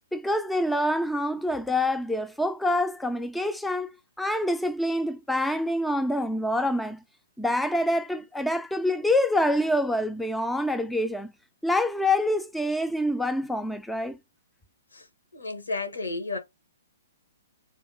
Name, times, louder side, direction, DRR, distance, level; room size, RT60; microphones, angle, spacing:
voice 1, 0.1-7.0 7.4-11.3 11.6-14.2, left 1 dB, 5° left, 0.4 m, -26 dB
voice 2, 15.3-16.4, left 3 dB, 80° left, 1.6 m, -32 dB
4.2 x 2.5 x 3.5 m
figure-of-eight pair, 125°, 0 cm